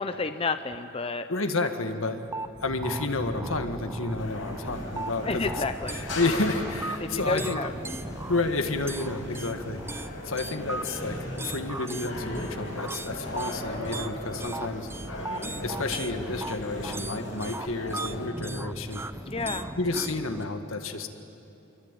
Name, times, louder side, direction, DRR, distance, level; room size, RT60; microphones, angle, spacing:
voice 1, 0.0-1.3 5.3-6.0 7.0-7.7 8.0-8.1 15.2-15.5 19.3-19.7, left 3 dB, 30° left, 10 dB, 0.7 m, -31 dB
voice 2, 1.3-2.2 2.6-5.5 5.9-7.6 8.3-14.9 15.6-19.0 19.8-21.1, left 3 dB, 80° left, 7 dB, 1.8 m, -30 dB
sound 1, 2.3-20.4, right 2 dB, 10° right, 0.5 m, -37 dB
sound 2, 4.2-18.3, left 1 dB, 65° left, 5.5 m, -39 dB
26.5 x 23.5 x 9.1 m, 3.0 s
head